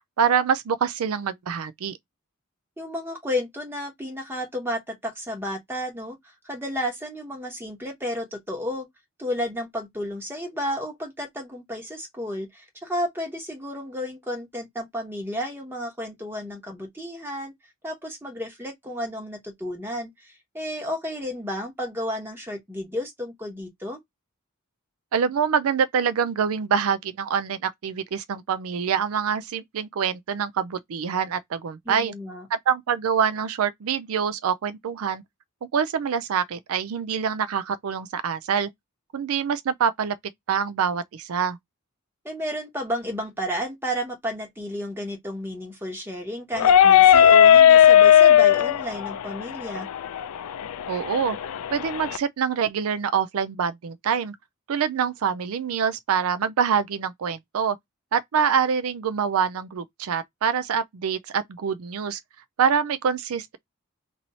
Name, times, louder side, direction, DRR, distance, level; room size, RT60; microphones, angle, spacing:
voice 1, 0.2-2.0 25.1-32.1 32.5-35.2 35.6-38.7 39.1-40.2 40.5-41.6 50.9-51.4 51.7-54.4 54.7-57.8 58.1-62.2 62.6-63.6, right 7 dB, 75° right, 0.4 m, -25 dB
voice 2, 2.8-6.2 6.4-8.9 9.2-17.5 17.8-24.0 31.8-32.5 42.2-49.9, equal, 10° right, 1.2 m, -32 dB
sound 1, 46.5-52.2, left 9 dB, 80° left, 0.4 m, -16 dB
3.0 x 2.6 x 4.0 m
head